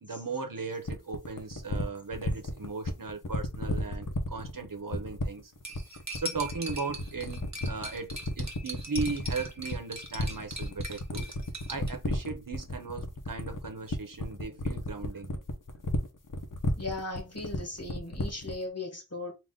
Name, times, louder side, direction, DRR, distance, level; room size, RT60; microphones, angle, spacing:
voice 1, 0.0-5.5 6.2-11.3 11.7-15.3, right 4 dB, 65° right, 1.0 m, -37 dB
sound 1, 0.8-18.6, left 2 dB, 60° left, 1.0 m, -32 dB
Cutlery silverware, 5.6-11.9, equal, 50° right, 1.2 m, -41 dB
voice 2, 16.8-19.3, left 2 dB, 45° left, 1.8 m, -37 dB
3.6 x 2.8 x 3.8 m
wide cardioid pair, 50°, 35 cm